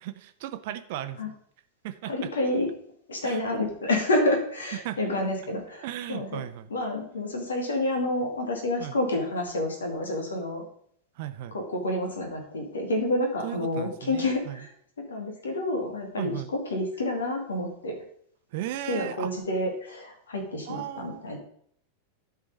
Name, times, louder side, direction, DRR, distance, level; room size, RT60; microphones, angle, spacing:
voice 1, 0.0-1.3 1.8-2.1 3.2-3.4 4.8-5.0 5.8-6.7 8.8-9.0 11.2-11.6 13.4-14.6 16.2-16.5 18.5-19.3 20.7-21.2, right 13 dB, 50° right, 11 dB, 0.7 m, -36 dB
voice 2, 2.1-2.7 3.1-6.4 6.7-10.6 11.5-14.7 15.1-18.0 18.9-21.4, left 1 dB, 70° left, 2 dB, 2.1 m, -29 dB
12.0 x 4.8 x 5.4 m, 0.64 s
figure-of-eight pair, 90°, 0 cm